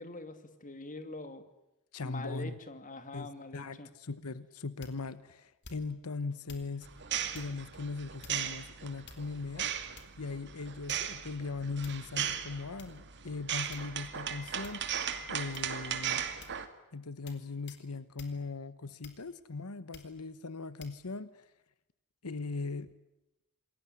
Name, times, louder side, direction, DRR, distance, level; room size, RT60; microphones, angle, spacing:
voice 1, 0.0-1.4 2.0-3.9, left 2 dB, 35° left, 9 dB, 2.5 m, -44 dB
voice 2, 1.9-2.6 3.1-6.9 7.3-9.7 10.2-16.2 16.9-21.5 22.2-22.9, left 3 dB, 85° left, 15 dB, 1.1 m, -39 dB
sound 1, 4.8-5.2 5.6-6.0 6.5-6.7 7.3-7.6 8.2-8.6 9.0-9.5 10.0-10.3 10.9-11.2 11.8-12.1 12.8-12.9 13.7-14.1 14.6-14.9 15.5-15.9 16.4-16.6 17.3-17.4 17.7-17.9 18.2-18.4 19.0-19.4 19.9-20.2 20.8-21.0, left 4 dB, 50° left, 4.0 m, -52 dB
sound 2, 6.8-16.7, right 8 dB, 55° right, 2.3 m, -37 dB
28.0 x 21.5 x 9.9 m, 0.91 s
head